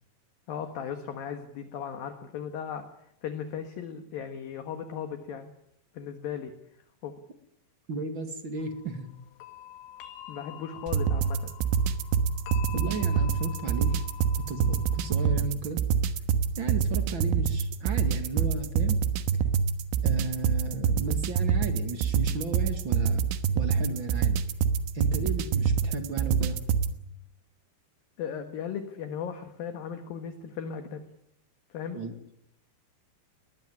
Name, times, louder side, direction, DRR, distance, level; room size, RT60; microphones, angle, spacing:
voice 1, 0.5-5.5 5.9-6.5 7.0-7.1 10.3-11.5 28.2-31.0 31.7-32.0, left 8 dB, 60° left, 8 dB, 2.9 m, -37 dB
voice 2, 7.9-9.1 12.7-14.0 14.3-15.8 16.6-19.0 20.0-23.2 23.5-24.4 24.9-26.6 31.9-32.1, right 4 dB, 45° right, 7 dB, 1.7 m, -35 dB
sound 1, 8.6-15.4, left 12 dB, 80° left, 4.3 m, -46 dB
sound 2, 10.9-26.9, right 6 dB, 90° right, 3.7 m, -26 dB
20.5 x 20.0 x 9.8 m, 0.74 s
omnidirectional pair, 5.4 m